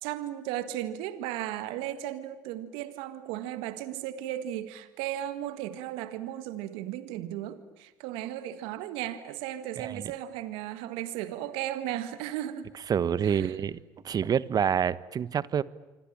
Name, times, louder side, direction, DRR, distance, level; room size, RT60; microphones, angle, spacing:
voice 1, 0.0-12.7 13.2-13.6, right 12 dB, 75° right, 12 dB, 1.8 m, -35 dB
voice 2, 12.9-13.8 14.0-15.6, right 8 dB, 45° right, 18 dB, 1.2 m, -27 dB
27.0 x 25.0 x 8.9 m, 1.1 s
hypercardioid pair, 65°, 9 cm